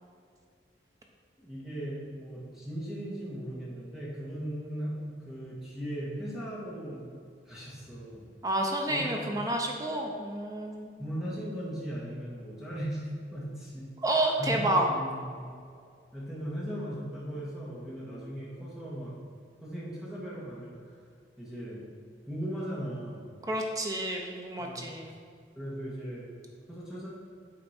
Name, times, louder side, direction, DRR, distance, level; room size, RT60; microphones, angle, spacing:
voice 1, 1.4-7.0 7.4-8.2 8.9-9.4 11.0-13.9 14.4-15.5 16.1-19.1 19.6-20.8 21.4-21.8 22.3-23.2 24.6-24.9 25.5-26.3 26.7-27.1, equal, ahead, -7 dB, 1.5 m, -38 dB
voice 2, 8.4-11.0 14.0-14.9 23.5-25.2, right 1 dB, 20° right, 1 dB, 0.6 m, -29 dB
7.8 x 4.3 x 4.3 m, 2.2 s
head